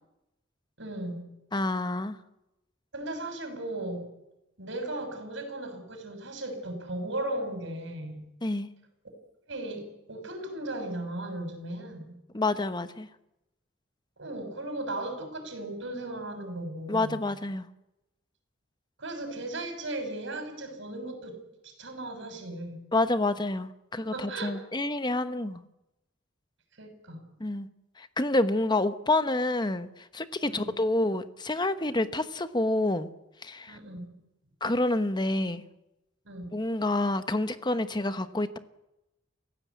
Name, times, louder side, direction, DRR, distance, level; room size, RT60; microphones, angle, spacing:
voice 1, 0.8-1.3 2.9-4.1 4.6-8.3 9.5-9.8 10.1-12.1 14.2-17.2 19.0-21.4 21.6-22.8 24.0-24.5 26.8-27.3 30.5-30.8 33.7-34.1 36.2-36.5, right 1 dB, 65° right, 6 dB, 6.3 m, -36 dB
voice 2, 1.5-2.2 8.4-8.7 12.3-13.1 16.9-17.7 22.9-25.6 27.4-27.7 28.0-33.1 33.4-33.8 34.6-35.6 36.5-38.6, left 2 dB, 20° left, 11 dB, 1.1 m, -28 dB
29.5 x 16.0 x 8.4 m, 0.93 s
head